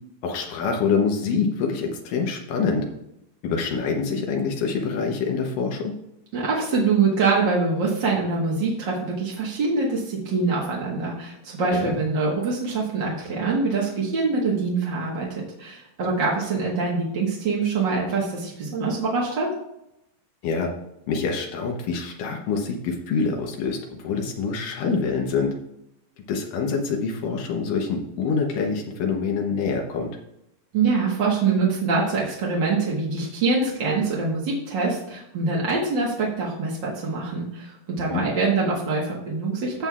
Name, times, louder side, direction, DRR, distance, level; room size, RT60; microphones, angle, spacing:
voice 1, 0.2-2.9 3.4-5.9 11.7-11.9 20.4-20.7 21.1-25.5 26.3-30.1 38.0-38.2, left 5 dB, 80° left, 2 dB, 2.6 m, -25 dB
voice 2, 6.3-19.5 30.7-39.9, right 4 dB, 50° right, -4 dB, 1.5 m, -24 dB
14.0 x 7.5 x 2.4 m, 0.82 s
omnidirectional pair, 3.8 m